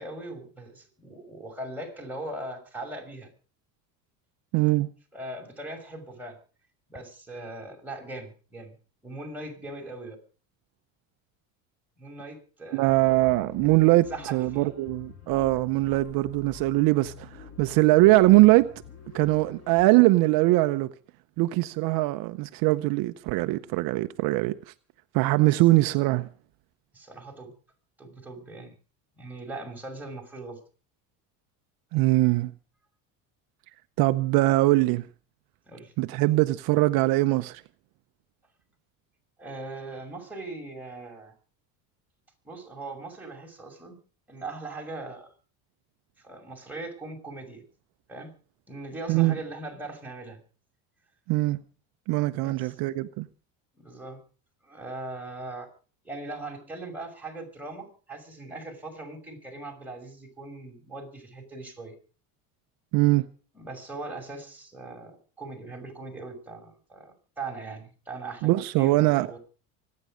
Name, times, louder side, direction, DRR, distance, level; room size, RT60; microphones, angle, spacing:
voice 1, 0.0-3.3 5.1-6.4 6.9-8.8 9.0-10.2 12.0-12.9 14.1-14.7 26.9-27.5 28.0-28.8 29.2-30.6 35.6-35.9 39.4-41.3 42.4-44.0 44.3-45.3 46.2-47.6 48.1-48.3 48.7-50.4 52.4-52.8 53.8-54.2 54.6-55.7 56.0-61.9 63.5-69.4, right 2 dB, 5° right, 6.1 m, -40 dB
voice 2, 4.5-4.9 12.7-14.1 14.3-18.7 19.1-20.9 21.4-24.5 25.1-26.3 31.9-32.5 34.0-35.1 36.0-37.6 49.1-49.3 51.3-51.6 52.1-53.3 62.9-63.2 68.4-69.3, right 19 dB, 70° right, 0.8 m, -22 dB
sound 1, 12.9-19.9, left 7 dB, 40° left, 3.6 m, -46 dB
25.0 x 9.7 x 5.0 m
supercardioid pair, 110°, 37 cm